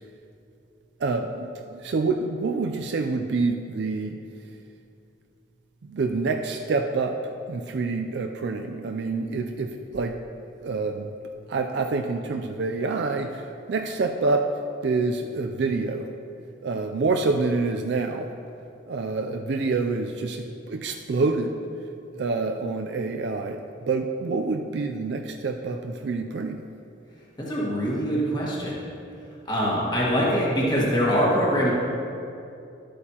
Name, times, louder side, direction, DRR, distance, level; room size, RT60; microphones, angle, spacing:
voice 1, 1.0-4.2 5.8-7.2 7.5-10.2 10.6-11.1 11.5-14.5 14.8-16.1 16.6-18.3 18.9-21.5 22.1-26.6, right 3 dB, 60° right, 4 dB, 0.4 m, -27 dB
voice 2, 27.5-28.8 29.5-31.7, equal, 20° left, -6 dB, 1.6 m, -23 dB
11.5 x 8.4 x 2.9 m, 2.6 s
head